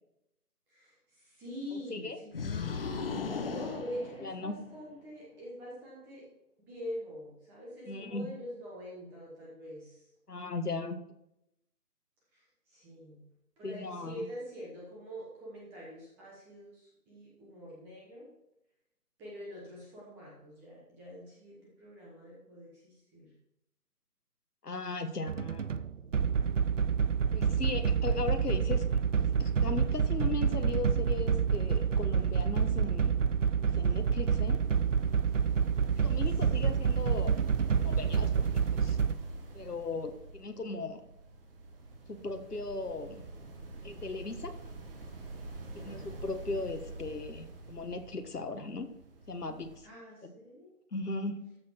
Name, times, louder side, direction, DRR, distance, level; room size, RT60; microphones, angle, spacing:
voice 1, 0.7-2.7 3.1-6.2 6.7-10.1 12.3-13.3 13.6-18.3 19.2-23.3 35.9-36.8 45.7-46.2 49.8-50.8, equal, 5° right, -4 dB, 1.0 m, -45 dB
voice 2, 1.7-2.2 4.2-4.6 7.9-8.3 10.3-11.0 13.6-14.3 24.6-25.8 27.3-28.9 29.2-33.2 33.6-34.6 36.0-37.3 37.8-38.5 38.7-39.0 39.5-41.0 42.1-43.2 43.8-44.5 45.7-48.9 49.3-49.9 50.2-50.3 50.9-51.4, left 3 dB, 80° left, 8 dB, 1.6 m, -37 dB
sound 1, 2.3-4.8, left 5 dB, 40° left, 0.9 m, -36 dB
sound 2, 25.3-39.1, right 6 dB, 55° right, 0.6 m, -28 dB
sound 3, 33.3-49.8, right 2 dB, 35° right, 1.9 m, -46 dB
13.5 x 7.0 x 4.5 m, 0.85 s
figure-of-eight pair, 150°, 46 cm